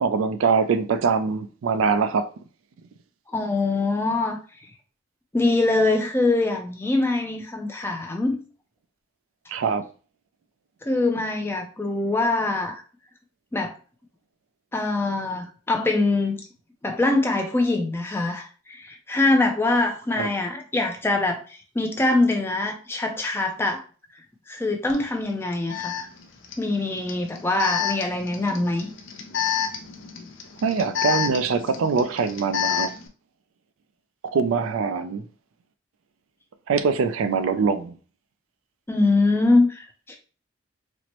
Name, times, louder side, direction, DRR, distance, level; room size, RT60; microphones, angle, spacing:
voice 1, 0.0-2.3 9.5-9.8 20.2-20.3 30.6-32.9 34.3-35.2 36.7-38.0, right 5 dB, 80° right, 0.4 m, -23 dB
voice 2, 3.3-4.4 5.3-8.4 10.8-12.8 13.5-13.7 14.7-16.4 16.8-23.8 24.1-26.1 26.6-28.9 38.9-40.2, left 2 dB, 10° left, 0.4 m, -23 dB
Alarm, 24.9-25.0 25.7-33.1, left 9 dB, 65° left, 0.5 m, -29 dB
4.2 x 2.0 x 2.9 m
head